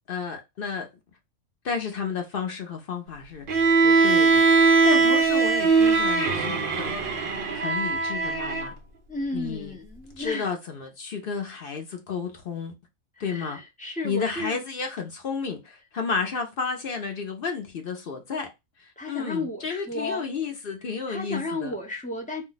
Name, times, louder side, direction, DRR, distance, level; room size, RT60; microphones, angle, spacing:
voice 1, 0.1-0.9 1.6-4.4 4.8-6.9 7.5-8.7 9.3-9.7 10.2-12.7 13.2-13.6 14.0-18.5 18.8-21.7, left 5 dB, 55° left, 0.7 m, -32 dB
Bowed string instrument, 3.5-8.7, right 4 dB, 55° right, 0.6 m, -20 dB
voice 2, 9.1-10.5 13.2-14.6 19.0-20.2 21.1-22.4, left 2 dB, 10° left, 0.5 m, -33 dB
2.6 x 2.2 x 3.8 m
omnidirectional pair, 1.5 m